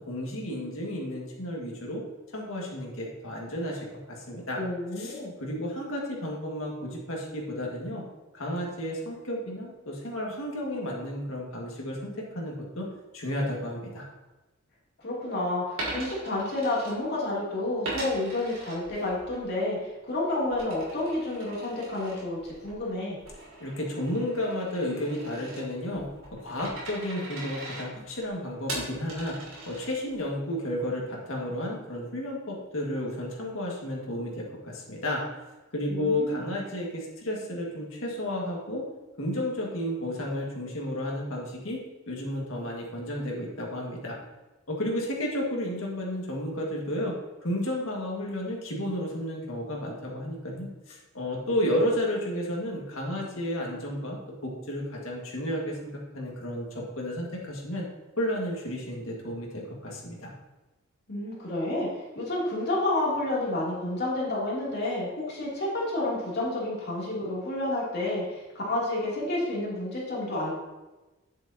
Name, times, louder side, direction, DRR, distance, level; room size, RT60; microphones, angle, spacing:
voice 1, 0.0-2.0 2.3-4.6 5.0-8.0 8.3-12.9 13.1-14.0 23.6-29.4 29.7-35.2 35.7-38.8 39.2-41.8 42.1-44.2 44.7-47.2 47.4-57.8 58.2-60.3, left 1 dB, 75° left, -2 dB, 1.9 m, -32 dB
voice 2, 4.6-5.3 15.0-19.8 20.1-23.2 35.9-36.4 61.1-61.9 62.1-70.5, left 2 dB, 55° left, -6 dB, 2.9 m, -30 dB
Coin (dropping), 15.7-17.4 17.8-19.4 19.8-30.3, right 2 dB, 70° right, 2.6 m, -41 dB
9.2 x 7.6 x 2.8 m, 1.1 s
head